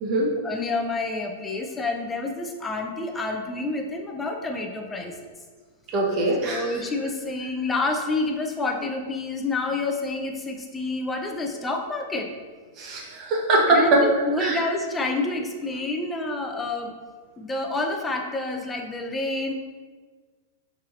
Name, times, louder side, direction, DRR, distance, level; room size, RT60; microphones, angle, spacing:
voice 1, 0.4-5.1 6.4-12.3 13.7-16.9 17.4-19.5, left 2 dB, 10° left, 2 dB, 0.5 m, -28 dB
voice 2, 5.9-6.8 12.8-14.0 14.4-14.6, right 2 dB, 35° right, -1 dB, 1.0 m, -22 dB
5.6 x 3.4 x 2.5 m, 1.4 s
hypercardioid pair, 140°, 0 cm